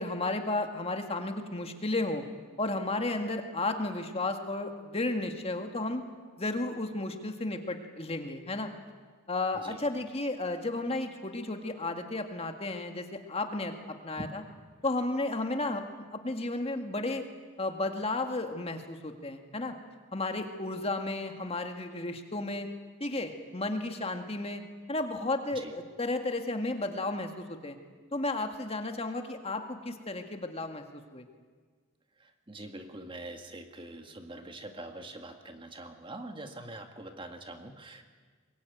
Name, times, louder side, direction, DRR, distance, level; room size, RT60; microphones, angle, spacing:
voice 1, 0.0-2.2 2.6-6.0 6.4-8.7 9.3-14.4 14.8-15.8 16.1-17.2 17.6-19.8 20.1-22.7 23.0-24.6 24.9-27.8 28.1-31.2, left 2 dB, 30° left, 5 dB, 1.9 m, -33 dB
voice 2, 32.2-38.0, right 2 dB, 25° right, 5 dB, 1.8 m, -44 dB
23.0 x 21.5 x 9.3 m, 1.5 s
head